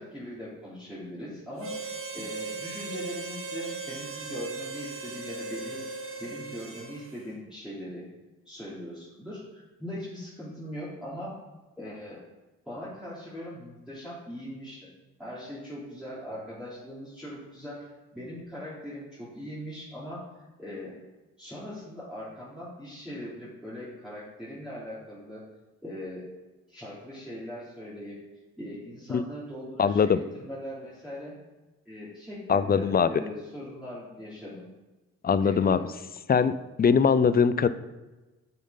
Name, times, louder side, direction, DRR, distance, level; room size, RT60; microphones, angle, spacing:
voice 1, 0.0-5.8 6.2-8.0 8.4-11.4 11.8-12.2 12.6-14.9 15.2-21.0 21.4-25.4 25.8-26.2 26.7-28.2 28.6-31.3 31.8-34.7 35.4-35.9, left 1 dB, ahead, -10 dB, 3.2 m, -40 dB
Harmonica, 1.6-7.2, right 4 dB, 45° right, 1.4 m, -37 dB
voice 2, 29.8-30.2 32.5-33.1 35.2-35.8 36.3-36.5 36.8-37.7, left 6 dB, 30° left, 14 dB, 0.5 m, -21 dB
9.5 x 7.3 x 4.0 m, 1.1 s
cardioid pair, 90°, 30 cm